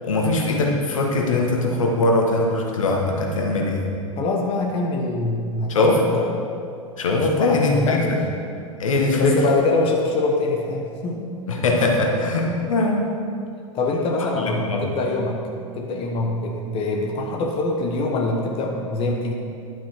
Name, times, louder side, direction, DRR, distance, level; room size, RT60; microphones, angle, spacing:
voice 1, 0.0-3.8 5.7-6.0 7.0-8.2 8.8-9.4 11.5-13.1 14.4-14.8, left 2 dB, 70° left, 0 dB, 1.5 m, -21 dB
voice 2, 4.2-6.3 7.2-8.2 9.2-11.3 13.7-15.4 15.7-19.3, left 2 dB, 30° left, 0 dB, 1.1 m, -24 dB
11.5 x 5.9 x 4.6 m, 2.4 s
figure-of-eight pair, 95°, 17 cm